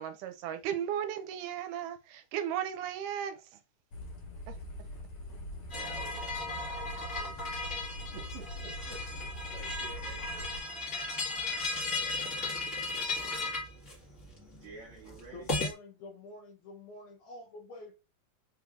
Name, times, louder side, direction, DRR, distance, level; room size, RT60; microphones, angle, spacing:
voice 1, 0.0-3.4 4.5-4.6, right 9 dB, 80° right, 2.1 m, -35 dB
sound 1, 3.9-10.6, left 1 dB, 55° left, 2.4 m, -43 dB
sound 2, 5.7-15.7, left 3 dB, 35° left, 1.3 m, -36 dB
voice 2, 5.7-7.5 8.1-11.4 13.5-13.8 14.5-15.5, right 4 dB, 50° right, 2.4 m, -52 dB
voice 3, 15.3-17.9, left 3 dB, 75° left, 2.3 m, -47 dB
5.4 x 3.3 x 2.4 m
omnidirectional pair, 3.7 m